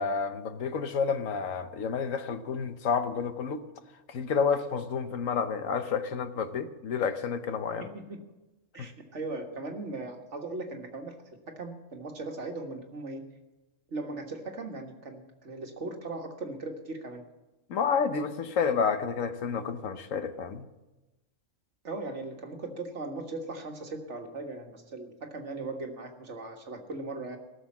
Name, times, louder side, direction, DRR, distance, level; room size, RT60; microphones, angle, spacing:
voice 1, 0.0-3.6 4.1-7.9 8.8-8.9 17.7-20.6, left 6 dB, 80° left, 10 dB, 1.3 m, -30 dB
voice 2, 7.8-8.2 8.7-11.1 11.5-13.2 13.9-17.2 21.8-27.4, right 2 dB, 60° right, 3 dB, 1.9 m, -38 dB
17.5 x 7.1 x 8.5 m, 1.1 s
omnidirectional pair, 1.4 m